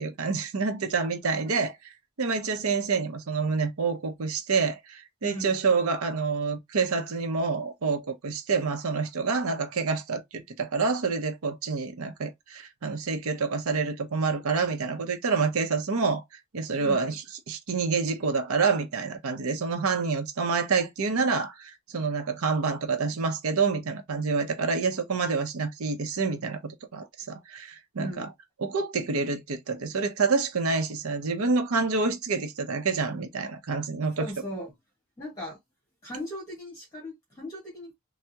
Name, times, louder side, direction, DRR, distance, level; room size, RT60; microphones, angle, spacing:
voice 1, 0.0-1.9 2.2-16.2 16.5-28.3 28.6-34.3, right 4 dB, 85° right, 0.6 m, -28 dB
voice 2, 1.2-1.6 5.2-5.5 16.8-17.0 28.0-28.3 34.1-34.7 35.2-35.6 36.0-37.9, equal, 15° left, 1.2 m, -38 dB
3.4 x 2.0 x 2.7 m
head